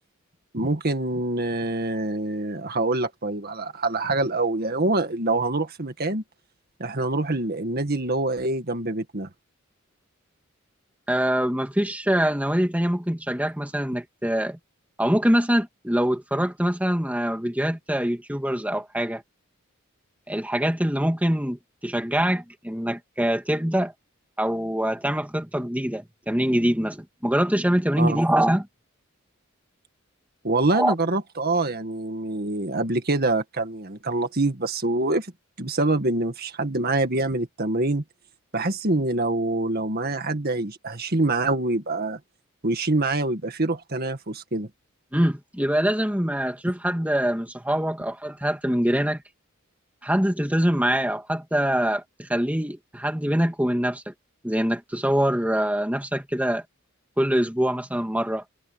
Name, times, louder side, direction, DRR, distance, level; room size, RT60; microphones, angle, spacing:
voice 1, 0.5-6.2 6.8-9.3 28.0-28.2 30.4-35.3 35.6-38.0 38.5-42.2 42.6-44.7, right 2 dB, 45° right, 1.9 m, -25 dB
voice 2, 11.1-14.6 15.0-19.2 20.3-23.9 24.4-28.7 30.7-30.9 45.1-49.2 50.0-54.1 54.4-56.6 57.2-58.4, equal, 5° right, 2.2 m, -24 dB
head